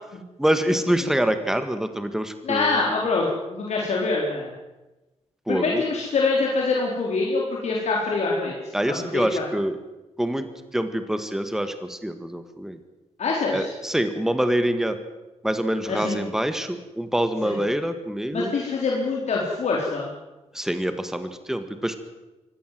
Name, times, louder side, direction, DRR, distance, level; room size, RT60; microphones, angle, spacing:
voice 1, 0.4-2.9 5.5-5.8 8.7-9.8 10.2-10.5 10.7-12.8 13.5-15.0 15.4-18.5 20.5-21.9, right 1 dB, 5° right, 9 dB, 1.7 m, -25 dB
voice 2, 2.4-4.5 5.5-9.4 13.2-13.7 15.9-16.2 17.4-17.6 18.3-20.1, left 3 dB, 70° left, -3 dB, 4.2 m, -25 dB
24.0 x 17.0 x 7.7 m, 1.1 s
wide cardioid pair, 110°, 12 cm